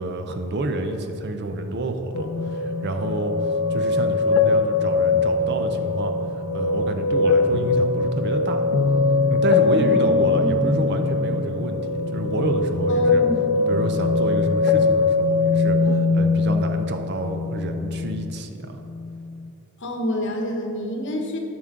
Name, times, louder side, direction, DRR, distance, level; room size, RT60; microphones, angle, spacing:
voice 1, 0.0-8.6 9.3-13.2 13.6-18.8, right 2 dB, 50° right, 6 dB, 0.6 m, -29 dB
sound 1, 2.1-18.4 18.8-19.5, left 3 dB, 75° left, 0.5 m, -22 dB
voice 2, 9.7-10.9 12.9-13.5 19.8-21.4, left 1 dB, 55° left, 2 dB, 1.0 m, -28 dB
10.5 x 6.1 x 3.7 m, 2.9 s
head